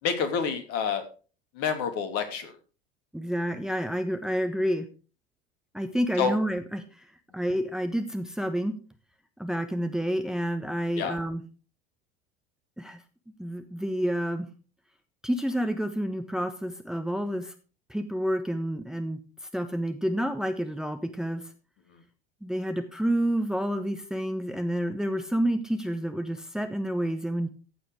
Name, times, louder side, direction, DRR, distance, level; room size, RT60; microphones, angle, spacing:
voice 1, 0.0-1.0 1.6-2.5 6.2-6.4 11.0-11.2, left 6 dB, 50° left, 7 dB, 2.8 m, -28 dB
voice 2, 3.1-4.8 5.7-6.8 7.3-8.7 9.4-11.4 12.8-13.0 13.4-14.5 15.2-17.5 17.9-19.2 19.5-21.5 22.4-27.5, equal, ahead, 8 dB, 1.2 m, -29 dB
15.0 x 7.8 x 4.8 m, 0.37 s
figure-of-eight pair, 70°, 31 cm